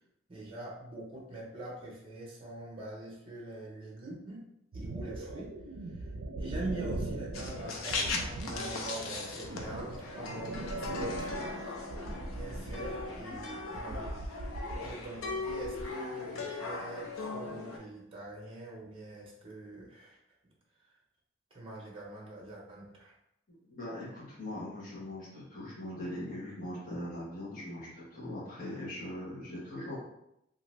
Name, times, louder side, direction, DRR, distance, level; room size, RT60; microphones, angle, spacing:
voice 1, 0.3-4.4 4.7-5.5 5.9-6.1 6.4-11.9 12.3-14.4 14.8-20.2 20.9-21.0 21.5-23.1, right 2 dB, 25° right, -3 dB, 0.6 m, -44 dB
sound 1, 4.7-15.9, right 2 dB, 80° right, 0.4 m, -40 dB
sound 2, 7.3-17.8, left 3 dB, 85° left, 0.5 m, -39 dB
voice 2, 23.5-30.0, left 1 dB, 40° left, -8 dB, 1.0 m, -41 dB
2.6 x 2.5 x 3.1 m, 0.80 s
head